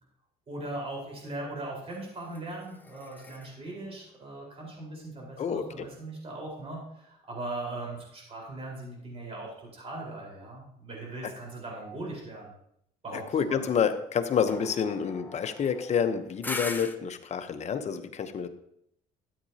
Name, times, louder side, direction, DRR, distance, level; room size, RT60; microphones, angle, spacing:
voice 1, 0.5-12.5 13.0-13.6, right 2 dB, 35° right, -2 dB, 4.4 m, -39 dB
sound 1, 1.9-5.4 14.5-17.0, left 2 dB, 10° left, 0.8 m, -42 dB
voice 2, 5.4-5.9 13.1-18.5, left 7 dB, 40° left, 8 dB, 0.9 m, -28 dB
13.0 x 8.4 x 2.8 m, 0.72 s
cardioid pair, 110°, 17 cm